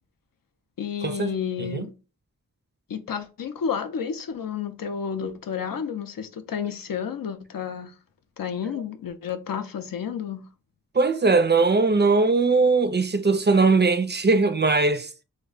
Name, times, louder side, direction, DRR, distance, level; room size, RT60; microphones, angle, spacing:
voice 1, 0.8-1.9 2.9-7.9 8.4-10.4, left 7 dB, 75° left, 0.5 m, -31 dB
voice 2, 10.9-15.1, right 3 dB, 30° right, 0.4 m, -20 dB
3.2 x 2.2 x 3.7 m
wide cardioid pair, 60°, 35 cm